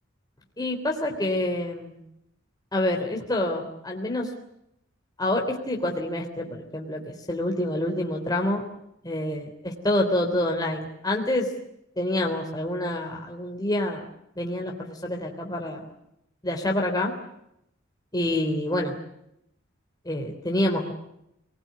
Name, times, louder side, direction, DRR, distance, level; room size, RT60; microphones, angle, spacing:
voice 1, 0.6-2.0 2.7-4.3 5.2-8.7 9.0-11.5 12.0-14.1 14.4-15.9 16.4-17.1 18.1-18.9 20.0-20.9, left 1 dB, 20° left, 0 dB, 3.4 m, -27 dB
25.5 x 20.5 x 9.6 m, 0.80 s
head